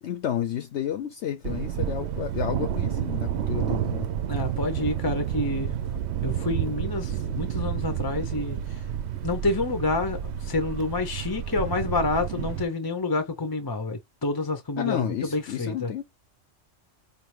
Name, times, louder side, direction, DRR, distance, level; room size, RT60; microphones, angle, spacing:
voice 1, 0.0-4.1 14.8-16.0, left 10 dB, 70° left, 0.9 m, -31 dB
Thunder, 1.4-12.6, right 10 dB, 65° right, 0.8 m, -30 dB
voice 2, 4.3-5.7 6.2-8.6 9.2-15.0 15.3-15.9, left 3 dB, 25° left, 0.5 m, -28 dB
4.9 x 2.6 x 3.2 m
omnidirectional pair, 1.3 m